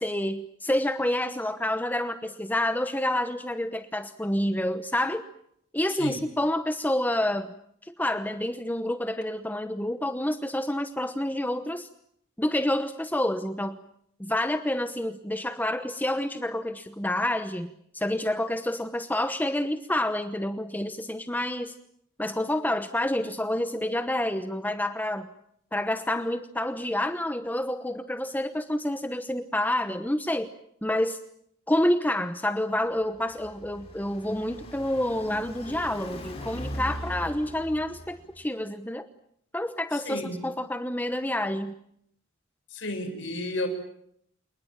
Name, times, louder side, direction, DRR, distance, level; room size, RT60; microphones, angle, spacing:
voice 1, 0.0-5.2 5.7-7.5 7.8-11.9 12.4-13.8 14.2-21.7 22.2-25.3 25.7-30.5 30.8-31.2 31.7-39.1 39.5-41.7, left 1 dB, 10° left, 9 dB, 1.0 m, -28 dB
Car passing by, 32.8-38.4, equal, 30° left, 5.7 m, -40 dB
voice 2, 39.9-40.4 42.7-43.7, left 1 dB, 65° left, 7 dB, 6.0 m, -32 dB
28.5 x 19.5 x 8.9 m, 0.70 s
head